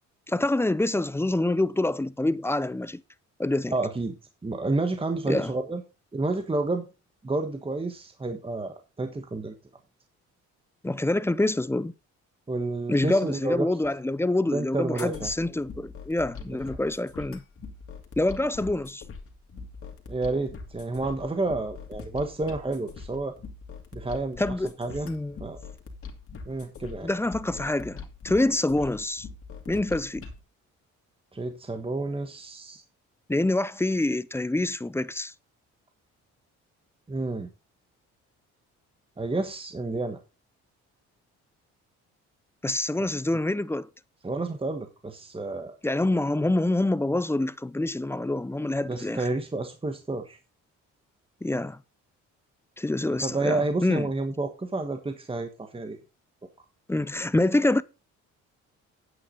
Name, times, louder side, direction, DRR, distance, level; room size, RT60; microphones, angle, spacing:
voice 1, 0.3-3.0 3.4-3.7 5.3-5.5 10.8-11.9 12.9-17.4 18.2-19.0 24.4-24.7 25.1-25.4 27.0-29.3 29.7-30.3 33.3-35.3 42.6-43.9 45.8-49.2 51.4-51.8 52.8-54.1 56.9-57.8, left 2 dB, 10° left, 0.5 m, -26 dB
voice 2, 3.7-4.1 4.4-5.8 6.1-6.9 7.2-9.5 12.5-13.7 14.5-15.3 16.5-16.6 20.1-23.3 23.9-25.1 25.4-25.6 26.5-27.1 31.3-32.8 37.1-37.5 39.2-40.2 43.0-43.1 44.2-45.8 48.9-50.4 53.1-56.0, right 2 dB, 20° right, 1.4 m, -30 dB
sound 1, 15.0-30.4, left 4 dB, 45° left, 2.8 m, -42 dB
9.6 x 8.7 x 3.9 m
cardioid pair, 90°, 30 cm